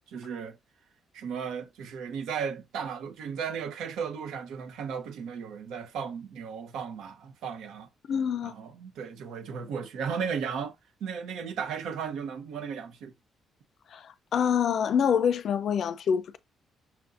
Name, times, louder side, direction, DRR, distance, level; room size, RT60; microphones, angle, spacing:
voice 1, 0.1-0.6 1.1-7.9 8.4-10.8 11.0-13.1, right 6 dB, 85° right, 0.8 m, -35 dB
voice 2, 8.1-8.5 13.9-16.4, left 7 dB, 60° left, 0.4 m, -26 dB
5.7 x 2.6 x 2.4 m
cardioid pair, 90°, 0 cm